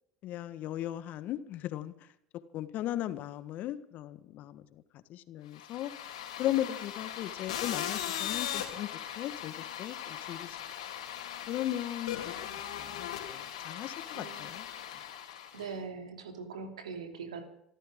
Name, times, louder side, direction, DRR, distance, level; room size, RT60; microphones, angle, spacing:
voice 1, 0.2-1.9 2.5-4.6 5.1-5.9 6.4-9.5 9.8-10.6 11.5-12.3 12.8-14.6, left 13 dB, 55° left, 12 dB, 1.4 m, -37 dB
sound 1, 5.5-15.7, left 10 dB, 80° left, 3.7 m, -39 dB
voice 2, 14.1-14.5 15.5-17.5, right 5 dB, 85° right, 4 dB, 2.9 m, -41 dB
26.0 x 14.0 x 3.8 m, 0.74 s
hypercardioid pair, 70°, 3 cm